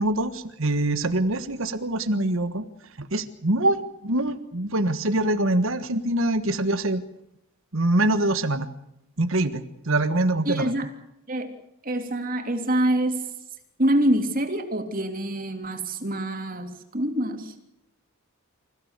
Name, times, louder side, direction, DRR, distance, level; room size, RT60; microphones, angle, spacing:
voice 1, 0.0-2.6 3.1-7.0 7.7-8.7 9.2-10.8, right 1 dB, 60° right, 10 dB, 1.5 m, -24 dB
voice 2, 10.4-10.9 11.3-11.5 11.8-13.3 13.8-17.7, right 1 dB, 40° right, 5 dB, 3.1 m, -26 dB
27.0 x 16.0 x 8.3 m, 0.80 s
head